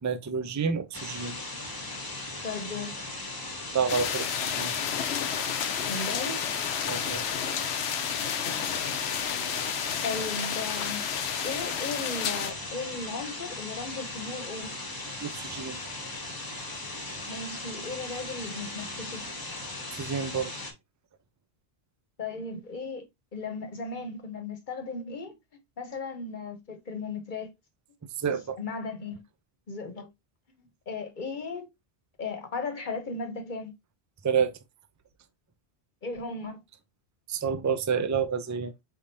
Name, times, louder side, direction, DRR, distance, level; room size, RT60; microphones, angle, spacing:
voice 1, 0.0-1.4 3.7-4.7 6.9-7.2 15.2-15.8 20.0-20.5 28.2-28.6 34.2-34.5 37.3-38.7, right 6 dB, 25° right, 0.4 m, -29 dB
sound 1, 0.9-20.7, left 2 dB, 20° left, 1.1 m, -38 dB
voice 2, 2.4-3.0 5.8-6.5 8.5-9.0 10.0-11.0 11.4-14.8 17.0-19.3 22.2-23.0 23.3-25.3 25.8-27.5 28.6-29.2 29.7-30.1 30.6-31.7 32.2-33.7 36.0-36.6, left 4 dB, 50° left, 1.1 m, -36 dB
sound 2, 3.9-12.5, left 8 dB, 85° left, 0.9 m, -31 dB
4.9 x 3.5 x 2.6 m
omnidirectional pair, 1.1 m